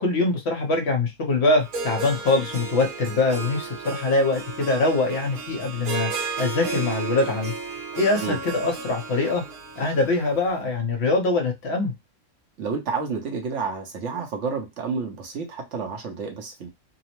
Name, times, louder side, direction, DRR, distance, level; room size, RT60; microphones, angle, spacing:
voice 1, 0.0-6.1 6.4-7.5 8.0-9.4 9.8-11.9, left 3 dB, 55° left, 0.9 m, -23 dB
Harp, 1.6-10.6, right 4 dB, 80° right, 1.3 m, -34 dB
voice 2, 12.6-16.7, right 5 dB, 60° right, 0.9 m, -30 dB
2.8 x 2.0 x 2.9 m
omnidirectional pair, 1.5 m